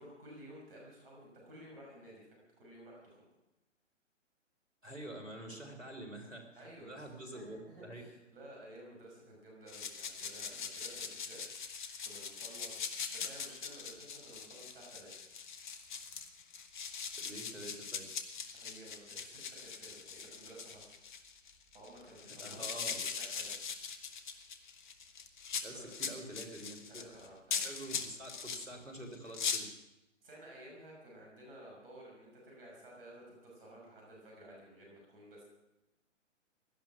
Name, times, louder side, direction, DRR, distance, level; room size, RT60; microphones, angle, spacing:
voice 1, 0.0-3.2 6.6-15.1 18.5-21.0 21.7-23.5 25.7-25.9 26.9-28.2 30.2-35.4, right 1 dB, 50° right, -2 dB, 6.1 m, -54 dB
voice 2, 4.8-8.0 17.2-18.1 22.3-23.0 25.6-27.2 27.6-29.7, right 1 dB, 90° right, 4 dB, 3.5 m, -47 dB
sound 1, 9.7-28.7 29.1-29.6, left 6 dB, 40° left, 1.3 m, -41 dB
17.0 x 11.5 x 6.0 m, 0.95 s
figure-of-eight pair, 130°, 38 cm